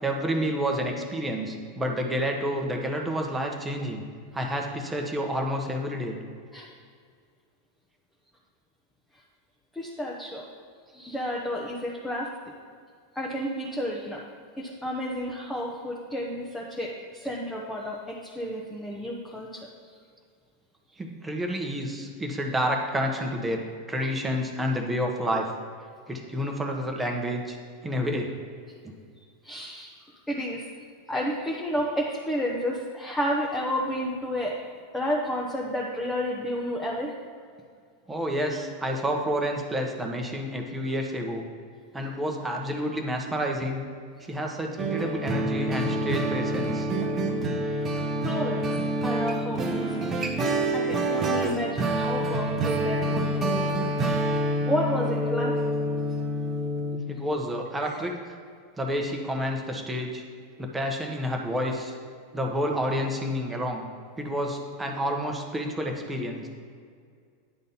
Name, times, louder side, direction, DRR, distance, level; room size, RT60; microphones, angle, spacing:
voice 1, 0.0-4.0 4.3-6.2 21.0-23.6 23.9-25.5 26.1-27.6 27.8-28.3 28.8-28.9 38.1-41.5 41.9-43.8 44.2-46.9 57.1-58.4 58.8-60.2 60.6-61.9 62.3-63.8 64.2-66.5, equal, 10° right, 1 dB, 1.2 m, -29 dB
voice 2, 9.7-10.5 10.9-12.3 13.1-14.2 14.6-19.7 29.4-29.9 30.3-30.6 31.1-34.6 34.9-37.1 47.6-47.7 48.2-48.6 49.0-50.0 50.7-53.8 54.3-55.5 57.8-57.9, equal, 10° left, -3 dB, 1.0 m, -31 dB
sound 1, 44.8-57.0, right 1 dB, 25° right, 0.9 m, -27 dB
9.9 x 4.0 x 5.7 m, 2.2 s
figure-of-eight pair, 90°, 0 cm